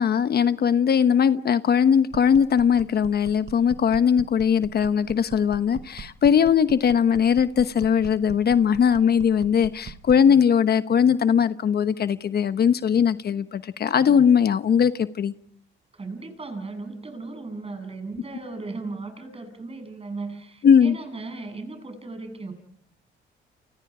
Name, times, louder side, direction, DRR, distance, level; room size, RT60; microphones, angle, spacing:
voice 1, 0.0-15.3 20.6-21.0, left 7 dB, 55° left, 12 dB, 1.1 m, -20 dB
sound 1, 2.1-10.3, right 7 dB, 55° right, 1.9 m, -42 dB
voice 2, 15.9-22.5, right 3 dB, 30° right, 6 dB, 7.5 m, -36 dB
29.5 x 29.5 x 5.0 m, 0.70 s
cardioid pair, 90°, 20 cm